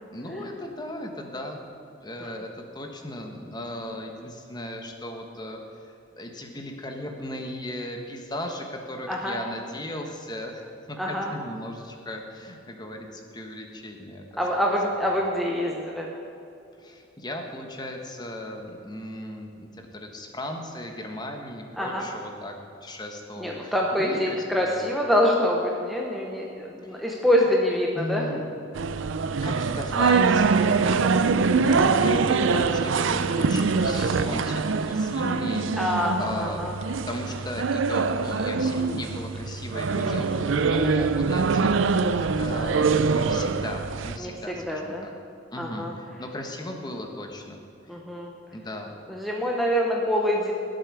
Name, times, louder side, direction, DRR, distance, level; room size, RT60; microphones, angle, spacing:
voice 1, 0.1-1.6 2.0-11.0 11.3-14.2 14.5-14.6 15.0-15.2 16.8-22.5 22.8-24.8 26.8-27.0 27.9-28.4 29.4-30.4 31.5-36.6 37.0-41.8 42.4-45.1 45.5-47.6 48.5-48.9, left 1 dB, 20° left, 3 dB, 1.2 m, -36 dB
voice 2, 9.1-9.4 11.0-11.3 14.4-16.1 21.8-22.1 23.4-28.2 31.8-32.0 35.8-36.8 40.0-40.6 44.2-45.1 45.6-45.9 47.9-48.3 49.1-50.5, equal, ahead, -2 dB, 0.9 m, -26 dB
sound 1, 28.8-44.2, right 4 dB, 70° right, 0.5 m, -24 dB
18.5 x 7.9 x 4.9 m, 2.7 s
head